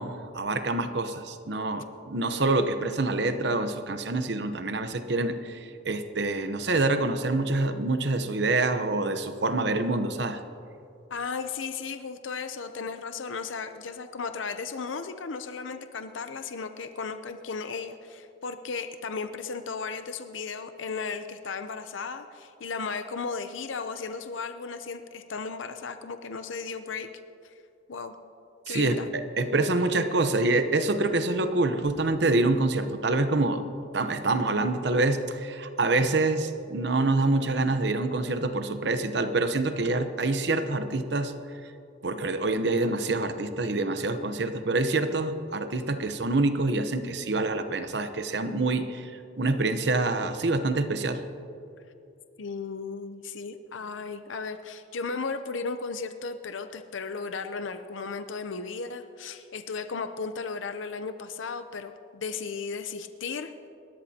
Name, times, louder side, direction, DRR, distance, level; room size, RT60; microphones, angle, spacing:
voice 1, 0.0-10.4 28.7-33.7 33.9-41.3 42.0-49.1 49.4-51.2, right 2 dB, 60° right, 9 dB, 0.9 m, -26 dB
voice 2, 11.1-27.1 27.9-28.1 28.7-29.1 52.4-63.5, left 4 dB, 80° left, 9 dB, 0.7 m, -35 dB
29.0 x 13.0 x 2.9 m, 2.7 s
head